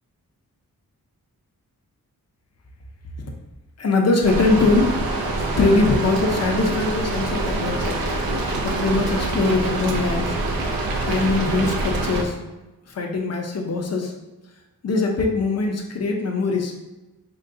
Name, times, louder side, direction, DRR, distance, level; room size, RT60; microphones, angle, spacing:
voice 1, 3.8-5.1 5.6-8.0 8.6-10.4 11.0-12.4 12.9-14.1 14.8-16.7, left 3 dB, 45° left, 2 dB, 0.5 m, -22 dB
Rain, 4.2-12.2, right 2 dB, 75° right, 0.5 m, -25 dB
3.6 x 2.2 x 2.5 m, 1.1 s
wide cardioid pair, 90°, 36 cm